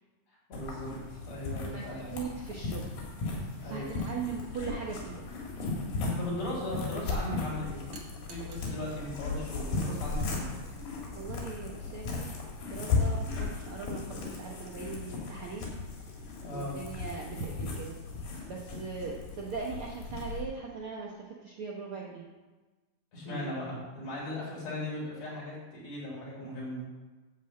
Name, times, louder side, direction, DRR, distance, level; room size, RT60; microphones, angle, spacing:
sound 1, 0.5-20.4, left 3 dB, 80° left, 3.8 m, -36 dB
voice 1, 0.5-2.1 3.6-3.9 6.2-7.8 8.3-10.6 16.4-16.8 23.1-26.8, left 1 dB, 50° left, -6 dB, 5.1 m, -38 dB
voice 2, 1.6-2.8 3.6-5.2 11.1-12.3 12.7-15.7 16.5-18.0 18.5-22.2 23.2-23.8, right 5 dB, 80° right, -2 dB, 1.2 m, -40 dB
sound 2, 3.9-4.2 7.9-8.8 10.2-10.4, right 4 dB, 60° right, 1.4 m, -52 dB
12.0 x 4.3 x 7.6 m, 1.2 s
omnidirectional pair, 3.9 m